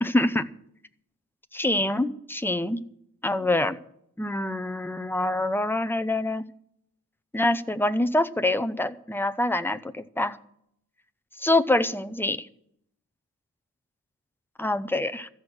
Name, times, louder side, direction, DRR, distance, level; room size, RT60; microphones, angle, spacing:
voice 1, 0.0-0.4 1.5-2.8 3.2-3.8 4.2-6.4 7.3-10.4 11.4-12.5 14.6-15.3, left 1 dB, 5° left, 10 dB, 0.7 m, -25 dB
14.0 x 6.3 x 9.7 m, 0.68 s
wide cardioid pair, 140°, 34 cm